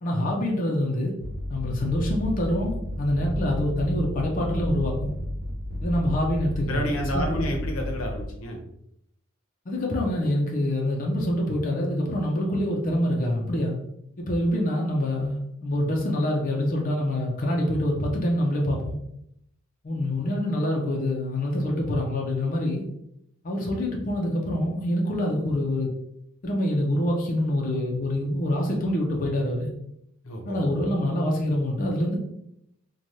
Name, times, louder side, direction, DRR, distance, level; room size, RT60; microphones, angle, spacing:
voice 1, 0.0-1.1 1.5-5.1 5.8-7.5 9.7-13.8 14.2-19.0 19.8-22.8 23.4-25.9 26.4-29.7 30.4-32.2, left 1 dB, 40° left, -1 dB, 0.5 m, -26 dB
sound 1, 1.2-8.3, left 1 dB, 45° right, 0.4 m, -32 dB
voice 2, 6.7-8.6 30.2-30.6, equal, 90° left, 2 dB, 0.7 m, -30 dB
3.1 x 2.2 x 2.6 m, 0.76 s
head